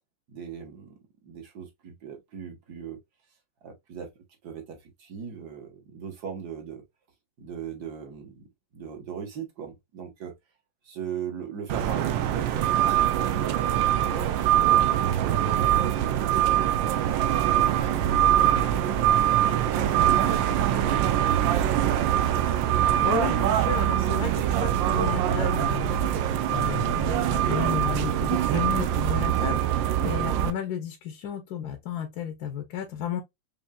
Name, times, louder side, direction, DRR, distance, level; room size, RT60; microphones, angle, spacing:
voice 1, 0.3-3.0 3.6-4.1 4.4-6.8 7.4-8.5 8.7-10.3 10.8-14.1 14.5-16.7 17.2-18.8 19.3-22.1, right 7 dB, 60° right, 1.6 m, -39 dB
sound 1, 11.7-30.5, right 11 dB, 80° right, 1.3 m, -23 dB
voice 2, 23.0-33.2, left 9 dB, 65° left, 1.1 m, -33 dB
5.4 x 2.7 x 2.2 m
omnidirectional pair, 2.0 m